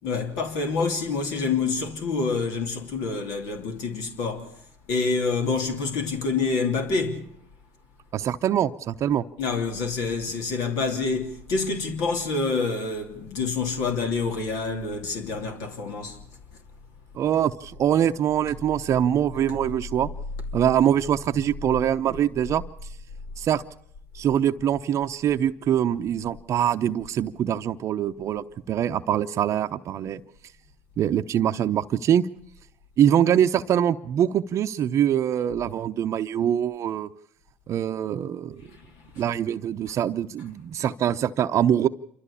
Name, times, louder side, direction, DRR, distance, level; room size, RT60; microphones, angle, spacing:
voice 1, 0.0-4.5 4.9-7.3 9.4-16.2 38.7-38.8 39.1-39.2, left 4 dB, 65° left, 3.1 m, -27 dB
voice 2, 8.1-9.2 17.1-20.1 20.5-22.6 23.4-23.6 24.1-30.2 31.0-32.3 33.0-37.1 37.7-38.6 39.2-41.9, right 10 dB, 50° right, 0.8 m, -23 dB
28.0 x 13.5 x 8.5 m
supercardioid pair, 85°, 7 cm